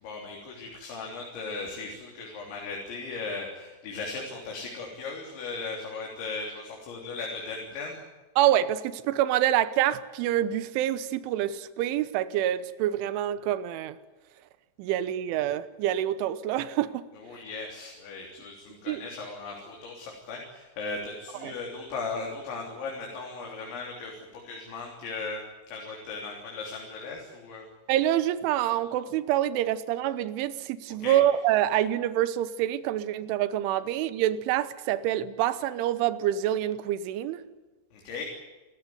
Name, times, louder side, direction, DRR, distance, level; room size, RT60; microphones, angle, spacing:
voice 1, 0.0-8.0 17.2-25.4 25.7-27.7 31.0-31.2 37.9-38.3, left 3 dB, 70° left, 5.8 m, -37 dB
voice 2, 8.4-14.0 14.8-17.0 18.9-19.0 21.4-21.5 27.9-37.4, right 12 dB, 80° right, 3.4 m, -26 dB
28.0 x 15.0 x 9.4 m
omnidirectional pair, 5.6 m